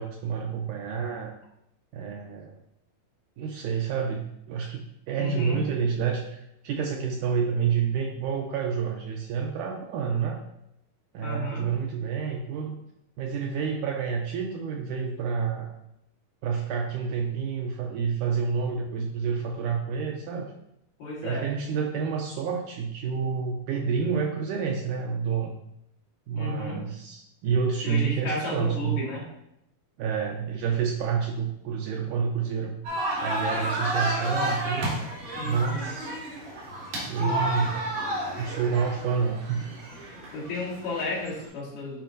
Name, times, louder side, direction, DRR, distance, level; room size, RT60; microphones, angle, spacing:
voice 1, 0.0-1.3 1.9-2.6 3.4-6.4 6.6-10.4 11.1-12.8 13.2-15.8 16.4-20.5 21.2-25.6 26.3-29.0 30.0-32.8 33.2-34.9 35.4-36.1 37.1-37.7 38.4-39.7, right 6 dB, 80° right, 2 dB, 1.9 m, -29 dB
voice 2, 5.2-5.6 11.2-11.7 21.0-21.5 26.3-26.8 27.8-29.2 35.4-35.9 37.2-37.4 40.3-42.0, left 2 dB, 65° left, -6 dB, 3.5 m, -33 dB
sound 1, 32.8-41.5, right 1 dB, 65° right, 3.4 m, -31 dB
10.0 x 5.0 x 2.6 m, 0.80 s
omnidirectional pair, 4.1 m